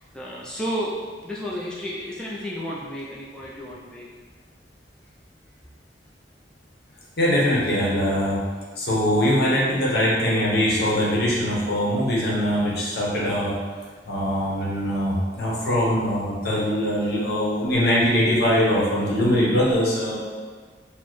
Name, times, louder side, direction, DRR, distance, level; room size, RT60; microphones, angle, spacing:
voice 1, 0.1-0.9 1.2-4.1, equal, 5° left, -6 dB, 0.3 m, -32 dB
voice 2, 7.2-8.4 8.8-13.5 14.1-20.1, equal, 60° left, -5 dB, 0.9 m, -22 dB
4.3 x 2.1 x 3.0 m, 1.5 s
head